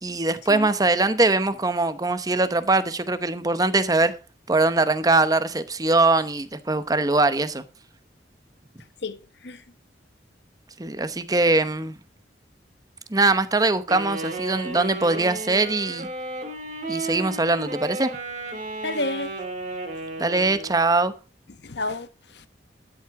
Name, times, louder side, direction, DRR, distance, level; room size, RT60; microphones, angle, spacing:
voice 1, 0.0-4.1 4.5-7.6 10.8-12.0 13.1-16.1 16.9-18.1 20.2-21.1, right 2 dB, 20° right, 0.8 m, -22 dB
voice 2, 9.0-9.6 18.8-19.3 21.6-22.5, left 2 dB, 65° left, 1.1 m, -31 dB
Wind instrument woodwind instrument, 13.9-20.8, right 2 dB, 40° right, 2.5 m, -33 dB
12.0 x 7.6 x 4.7 m
head